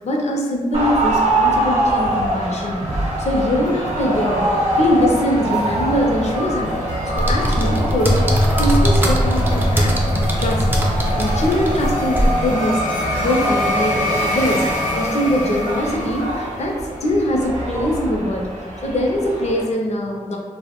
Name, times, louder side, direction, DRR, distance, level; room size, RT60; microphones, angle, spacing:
voice 1, 0.0-4.5 4.8-8.2 8.6-10.7 10.9-14.6 14.9-20.4, left 1 dB, 55° left, 0 dB, 0.4 m, -22 dB
sound 1, 0.7-19.6, right 1 dB, 55° right, 0.6 m, -25 dB
sound 2, 2.0-16.6, left 1 dB, 70° left, 0.8 m, -26 dB
sound 3, 7.1-12.3, equal, 15° right, 0.3 m, -19 dB
2.4 x 2.0 x 2.8 m, 1.5 s
wide cardioid pair, 135°, 14 cm